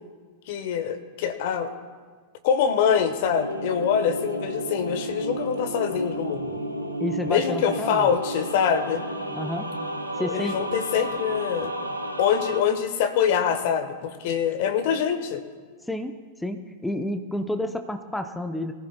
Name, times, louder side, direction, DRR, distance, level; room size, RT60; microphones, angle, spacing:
voice 1, 0.5-1.7 2.4-6.6 7.3-9.0 10.2-11.7 12.2-15.4, left 7 dB, 50° left, 10 dB, 1.2 m, -24 dB
sound 1, 3.3-12.6, right 1 dB, 85° right, 1.0 m, -32 dB
voice 2, 7.0-8.1 9.3-9.7 10.2-10.8 15.9-16.1 16.4-18.7, left 1 dB, 5° left, 6 dB, 0.8 m, -30 dB
22.5 x 15.0 x 2.3 m, 1.5 s
figure-of-eight pair, 90°, 0 cm